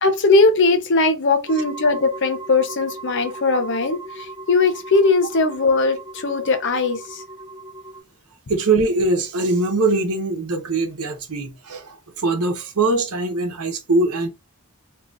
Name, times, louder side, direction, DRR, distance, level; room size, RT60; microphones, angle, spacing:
voice 1, 0.0-7.2, left 3 dB, 55° left, 0.7 m, -19 dB
sound 1, 1.5-8.0, right 2 dB, 50° right, 1.0 m, -37 dB
voice 2, 8.5-14.3, right 3 dB, 85° right, 0.9 m, -22 dB
3.0 x 2.4 x 3.8 m
head